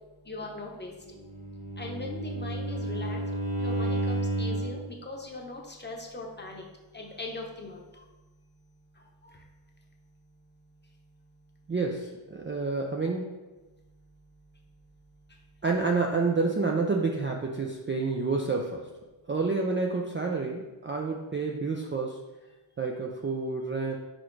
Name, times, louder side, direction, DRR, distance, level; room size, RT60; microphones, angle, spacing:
voice 1, 0.2-1.2 1.8-3.2 3.6-6.7 6.9-8.1 8.9-9.4 15.3-15.4, left 2 dB, 20° left, 0 dB, 0.9 m, -40 dB
Bowed string instrument, 1.2-4.9, right 1 dB, 60° right, 1.4 m, -31 dB
voice 2, 11.7-13.3 15.6-18.9 19.3-22.2 22.8-24.0, right 4 dB, 25° right, 0 dB, 0.4 m, -29 dB
6.2 x 4.7 x 3.2 m, 1.1 s
wide cardioid pair, 125°, 49 cm